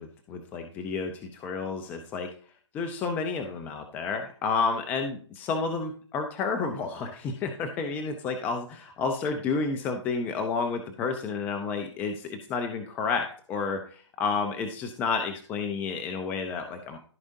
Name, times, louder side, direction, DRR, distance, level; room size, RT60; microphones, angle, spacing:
voice 1, 0.0-2.3 2.7-17.0, left 4 dB, 10° left, 5 dB, 0.6 m, -30 dB
14.5 x 5.0 x 2.7 m, 0.43 s
hypercardioid pair, 160°, 15 cm